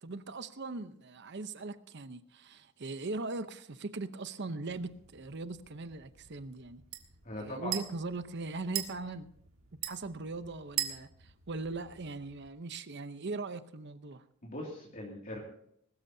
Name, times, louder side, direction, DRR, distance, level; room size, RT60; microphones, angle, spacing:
voice 1, 0.0-6.8 7.3-9.3 9.8-14.2, right 3 dB, 55° right, 0.8 m, -40 dB
sound 1, 4.7-12.5, right 11 dB, 75° right, 1.6 m, -43 dB
voice 2, 7.2-7.7 14.4-15.4, left 1 dB, 40° left, 2.5 m, -40 dB
21.0 x 13.0 x 2.8 m
head